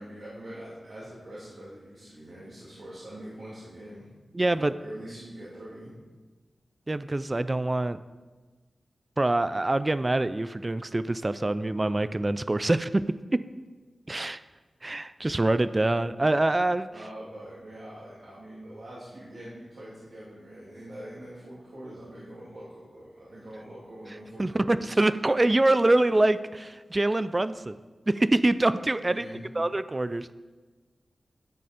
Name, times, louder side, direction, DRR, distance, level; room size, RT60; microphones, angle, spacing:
voice 1, 0.0-4.1 4.4-5.9 16.9-25.0 29.0-29.4, right 1 dB, 75° right, -9 dB, 2.7 m, -44 dB
voice 2, 4.3-4.7 6.9-8.0 9.2-13.0 14.1-14.4 14.8-16.9 24.4-27.8 28.1-29.2 29.6-30.3, right 2 dB, 25° right, 14 dB, 0.3 m, -25 dB
12.0 x 6.9 x 5.1 m, 1.3 s
wide cardioid pair, 95°, 0 cm